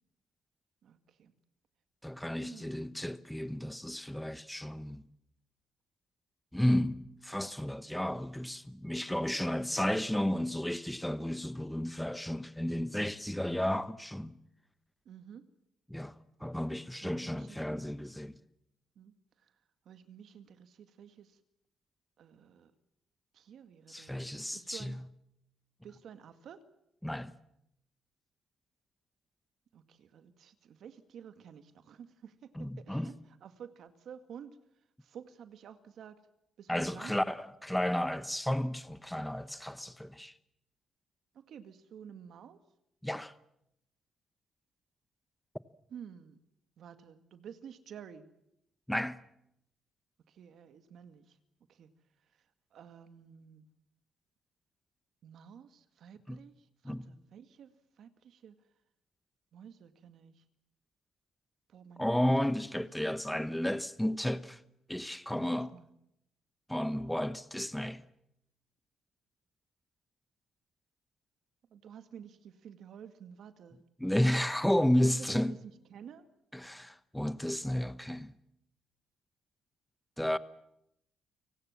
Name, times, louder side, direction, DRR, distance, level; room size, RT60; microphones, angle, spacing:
voice 1, 0.8-1.3 2.4-2.8 15.1-15.5 16.9-17.8 19.0-19.1 19.4-19.5 19.9-21.4 22.2-22.7 23.3-25.0 25.8-26.6 29.7-33.2 33.4-34.6 35.0-36.2 36.6-37.2 41.3-42.6 45.9-46.4 46.8-48.3 50.3-51.4 51.7-51.9 52.7-53.7 55.2-58.6 59.5-60.4 61.7-62.0 62.5-62.9 65.3-65.9 71.7-73.8 75.1-75.4 75.9-76.2, right 8 dB, 70° right, 2.0 m, -51 dB
voice 2, 2.0-5.0 6.5-14.4 15.9-16.1 16.4-18.4 23.9-25.0 27.0-27.3 32.5-33.1 36.7-40.3 43.0-43.3 48.9-49.2 56.3-56.4 56.8-57.2 62.0-64.6 64.9-65.7 66.7-68.0 74.0-75.6 76.5-78.3 80.2-80.4, left 1 dB, 5° left, 1.0 m, -32 dB
29.5 x 18.5 x 7.3 m
cardioid pair, 90°, 0 cm